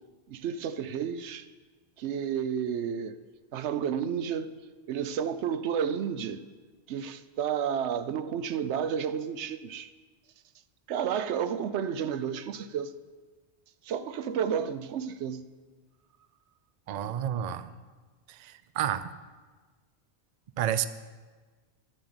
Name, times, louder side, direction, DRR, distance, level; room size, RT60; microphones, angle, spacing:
voice 1, 0.3-1.5 2.0-3.2 3.5-4.6 4.9-6.4 6.9-9.9 10.9-12.9 13.8-15.4, right 8 dB, 85° right, 0.9 m, -31 dB
voice 2, 16.9-17.7 18.3-19.1 20.6-20.9, right 10 dB, 50° right, 0.5 m, -30 dB
11.0 x 7.4 x 7.9 m
omnidirectional pair, 1.1 m